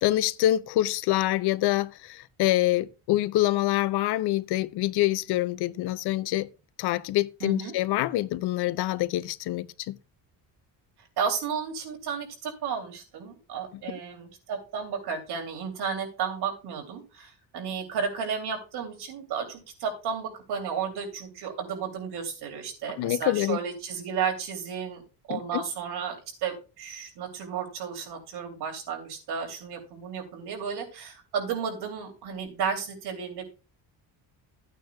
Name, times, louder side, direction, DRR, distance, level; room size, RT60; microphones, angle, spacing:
voice 1, 0.0-6.5 6.8-10.0 23.0-23.6 25.3-25.6, left 15 dB, 70° left, 0.5 m, -26 dB
voice 2, 7.4-7.7 11.2-25.0 25.3-33.4, right 6 dB, 65° right, 2.8 m, -33 dB
13.0 x 9.0 x 2.2 m
cardioid pair, 170°, 41 cm